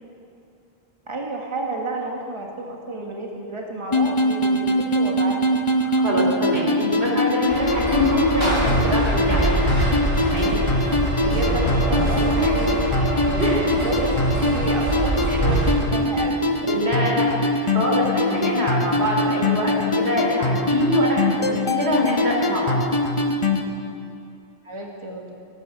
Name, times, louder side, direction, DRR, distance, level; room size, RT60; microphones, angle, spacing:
voice 1, 1.1-5.4 6.1-6.3 11.2-14.1 14.4-16.4 16.7-17.2 21.4-21.6 24.6-25.3, right 2 dB, 30° right, 0 dB, 1.6 m, -31 dB
sound 1, 3.9-23.6, left 1 dB, 30° left, 1.1 m, -23 dB
voice 2, 5.9-9.5 10.2-10.5 12.4-12.5 13.4-13.8 16.7-22.8, left 1 dB, 90° right, -2 dB, 3.9 m, -24 dB
sound 2, 7.5-15.7, right 1 dB, 70° right, 5.3 m, -24 dB
16.5 x 11.5 x 7.6 m, 2.5 s
omnidirectional pair, 1.0 m